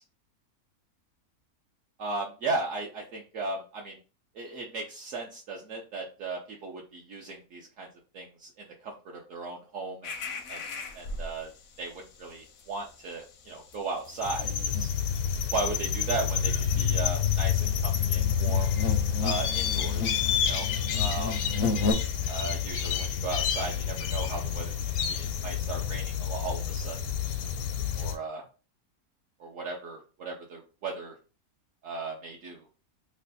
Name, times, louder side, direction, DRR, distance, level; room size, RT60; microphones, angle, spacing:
voice 1, 2.0-4.0 4.3-7.9 8.1-10.1 10.5-10.6 10.9-11.5 11.8-14.9 15.5-18.7 19.2-20.7 20.9-21.4 22.3-24.7 25.1-27.0 28.0-28.4 29.4-31.1 31.8-32.7, right 3 dB, 65° right, -1 dB, 1.0 m, -36 dB
sound 1, 10.0-11.6 12.0-12.2 12.4-21.9, left 3 dB, 65° left, 0.7 m, -36 dB
sound 2, 14.2-28.2, left 8 dB, 85° left, 1.1 m, -28 dB
3.2 x 2.2 x 3.9 m, 0.35 s
omnidirectional pair, 1.5 m